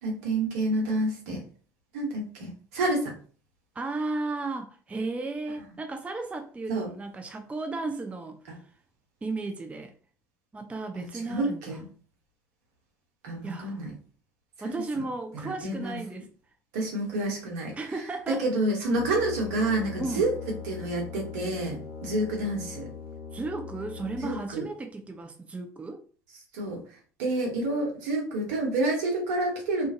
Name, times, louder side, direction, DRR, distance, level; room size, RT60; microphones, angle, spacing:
voice 1, 0.0-1.4 1.9-3.1 6.7-6.9 11.0-11.9 13.2-13.9 14.6-14.7 15.4-16.0 16.7-17.7 18.3-20.3 20.7-22.9 24.2-24.6 26.5-26.8 27.2-29.9, right 2 dB, 70° right, 1.0 m, -28 dB
voice 2, 3.8-8.4 9.2-9.9 10.5-11.8 13.4-13.8 14.6-16.3 17.8-18.5 20.0-20.3 23.3-26.0, right 3 dB, 15° right, 0.4 m, -34 dB
Brass instrument, 18.9-24.6, left 6 dB, 40° left, 1.1 m, -41 dB
2.5 x 2.4 x 2.6 m
hypercardioid pair, 65°, 9 cm